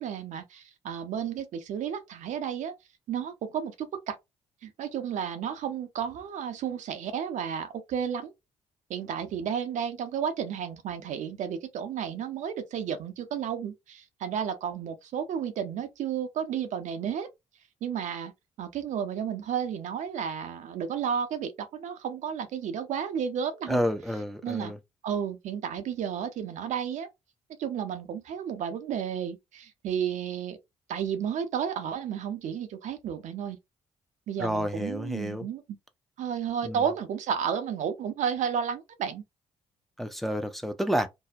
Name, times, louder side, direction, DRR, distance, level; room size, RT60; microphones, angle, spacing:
voice 1, 0.0-2.7 3.1-4.2 4.6-8.3 8.9-17.3 17.8-18.3 18.6-23.8 24.4-24.7 25.0-27.1 27.6-30.6 30.9-33.6 34.3-35.8 36.2-39.2, right 8 dB, 60° right, 0.6 m, -32 dB
voice 2, 23.7-24.8 34.4-35.5 36.7-36.8 40.0-41.1, equal, ahead, 0.6 m, -29 dB
2.6 x 2.0 x 2.3 m
hypercardioid pair, 45°, 14 cm